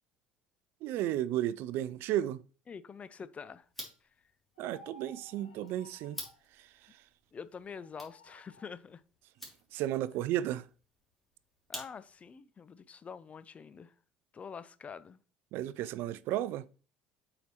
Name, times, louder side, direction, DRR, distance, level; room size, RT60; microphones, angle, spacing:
voice 1, 0.8-2.4 4.6-6.2 6.6-7.0 9.7-10.7 15.5-16.6, right 12 dB, 55° right, 0.4 m, -33 dB
voice 2, 2.7-3.7 7.3-9.0 11.7-13.9 14.3-15.2, left 6 dB, 30° left, 0.5 m, -46 dB
sound 1, 3.6-12.3, equal, 5° left, 2.8 m, -51 dB
sound 2, 4.6-6.4 7.7-8.7, left 1 dB, 85° left, 1.2 m, -56 dB
7.9 x 4.9 x 3.0 m
figure-of-eight pair, 60°, 5 cm